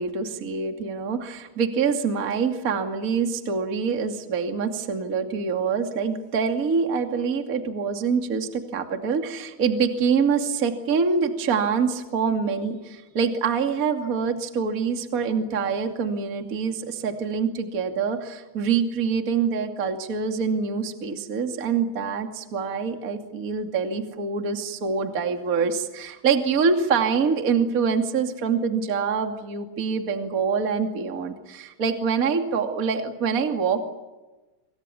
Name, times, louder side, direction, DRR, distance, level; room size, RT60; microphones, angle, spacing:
voice 1, 0.0-33.8, right 5 dB, 25° right, 5 dB, 2.0 m, -25 dB
27.5 x 26.5 x 7.1 m, 1.1 s
omnidirectional pair, 5.2 m